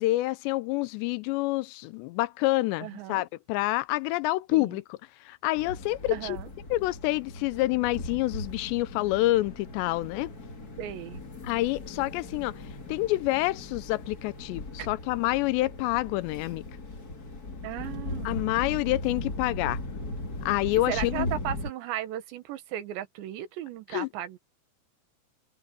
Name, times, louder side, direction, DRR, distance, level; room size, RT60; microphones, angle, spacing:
voice 1, 0.0-4.8 5.3-6.4 6.7-10.3 11.4-12.5 12.9-16.6 18.3-19.8 20.5-21.3 23.9-24.1, left 18 dB, 85° left, 2.9 m, -27 dB
voice 2, 2.8-3.3 4.5-4.8 6.1-6.5 10.8-11.2 17.6-18.4 20.9-24.4, right 12 dB, 85° right, 3.7 m, -36 dB
sound 1, 5.5-21.7, left 2 dB, 30° left, 2.2 m, -38 dB
open air
omnidirectional pair, 4.9 m